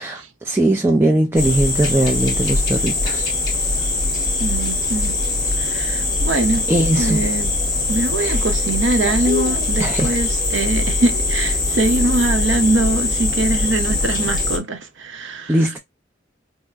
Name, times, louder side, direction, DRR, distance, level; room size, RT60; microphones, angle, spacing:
voice 1, 0.0-3.3 6.7-7.2 8.2-8.4 9.8-10.1 15.5-15.8, right 1 dB, 10° right, 0.4 m, -19 dB
sound 1, 1.4-14.6, left 2 dB, 20° left, 1.8 m, -21 dB
voice 2, 4.4-5.2 5.6-6.7 7.0-7.5 7.9-15.6, right 2 dB, 65° right, 0.8 m, -22 dB
5.6 x 2.1 x 2.4 m
head